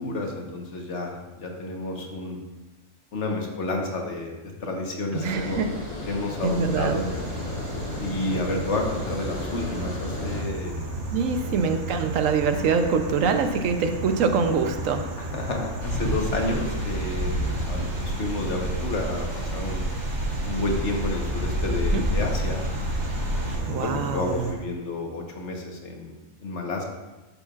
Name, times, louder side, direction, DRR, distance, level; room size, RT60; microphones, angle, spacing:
voice 1, 0.0-2.4 3.1-5.6 6.1-7.0 8.0-10.9 11.4-11.7 15.3-19.9 20.4-22.6 23.3-26.1 26.4-26.8, left 2 dB, 60° left, 1 dB, 1.5 m, -30 dB
Water, 5.1-10.4, left 1 dB, 80° left, 2.3 m, -35 dB
voice 2, 5.1-5.7 6.4-7.0 11.1-15.0 21.7-22.0 23.6-24.5, right 5 dB, 80° right, 7 dB, 1.1 m, -24 dB
sound 1, 6.4-24.5, right 1 dB, 60° right, 1.4 m, -34 dB
sound 2, 15.8-23.6, equal, 20° right, 2.4 m, -29 dB
12.0 x 6.9 x 2.4 m, 1.1 s
omnidirectional pair, 1.4 m